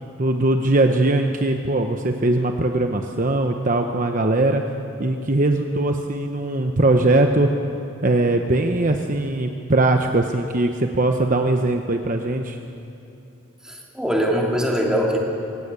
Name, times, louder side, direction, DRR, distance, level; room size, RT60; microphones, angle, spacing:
voice 1, 0.2-4.6 5.0-7.5 8.0-12.6, right 2 dB, 40° right, 4 dB, 0.9 m, -20 dB
voice 2, 13.6-15.2, equal, 5° right, -2 dB, 2.9 m, -22 dB
26.5 x 17.0 x 8.4 m, 2.7 s
head